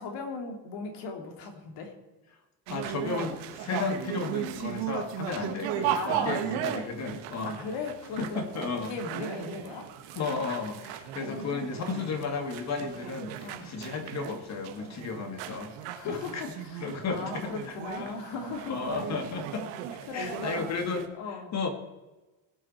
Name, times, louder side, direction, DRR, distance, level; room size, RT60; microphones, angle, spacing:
voice 1, 0.0-1.9 3.7-3.9 5.9-6.4 7.5-9.9 11.2-11.7 13.4-13.7 15.9-18.9 20.1-20.7 21.1-21.5, left 4 dB, 65° left, 3 dB, 3.1 m, -38 dB
voice 2, 2.7-7.6 8.2-8.9 10.1-15.7 16.0-16.4 16.8-18.1 18.7-21.1 21.5-21.7, left 4 dB, 35° left, 6 dB, 2.1 m, -34 dB
sound 1, 2.7-21.1, right 10 dB, 85° right, 1.7 m, -36 dB
20.5 x 8.6 x 4.4 m, 1.1 s
cardioid pair, 160°, 46 cm